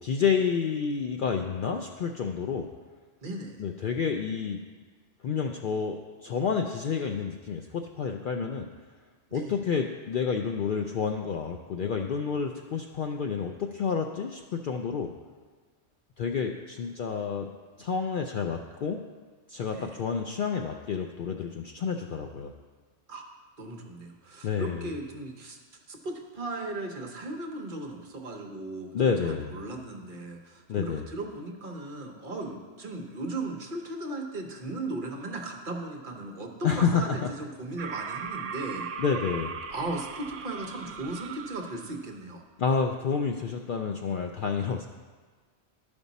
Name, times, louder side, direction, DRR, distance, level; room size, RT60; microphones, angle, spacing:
voice 1, 0.0-2.7 3.6-4.6 5.2-8.7 9.3-15.1 16.2-17.5 17.8-19.0 19.5-22.5 24.4-24.8 28.9-29.6 30.7-31.0 36.6-37.3 39.0-39.5 42.6-44.9, left 6 dB, 60° left, 3 dB, 0.5 m, -29 dB
voice 2, 3.2-3.6 9.3-9.5 19.7-20.0 23.1-23.2 23.6-25.6 25.9-38.9 39.7-42.4, right 2 dB, 45° right, 2 dB, 1.0 m, -37 dB
sound 1, 37.8-42.0, right 6 dB, 85° right, 1.0 m, -38 dB
12.5 x 5.3 x 4.1 m, 1.5 s
omnidirectional pair, 1.3 m